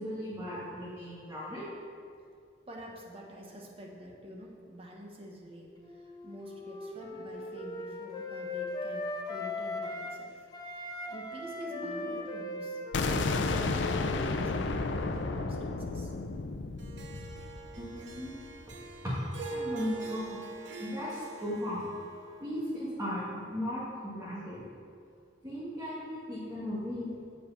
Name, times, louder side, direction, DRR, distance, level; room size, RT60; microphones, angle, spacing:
voice 1, 0.0-1.6 11.7-12.1 14.7-14.8 17.8-18.4 19.0-19.1 19.5-20.4 20.8-21.9 22.4-24.6 25.4-27.2, equal, 20° right, -10 dB, 1.6 m, -37 dB
voice 2, 2.7-10.5 11.0-16.1, equal, 35° right, -1 dB, 1.1 m, -47 dB
Wind instrument woodwind instrument, 5.8-10.2 10.5-15.0, left 2 dB, 25° left, 0.8 m, -39 dB
sound 1, 12.9-18.7, left 3 dB, 85° left, 0.5 m, -32 dB
Harp, 16.8-23.2, right 3 dB, 85° right, 0.8 m, -43 dB
6.9 x 5.0 x 7.1 m, 2.3 s
head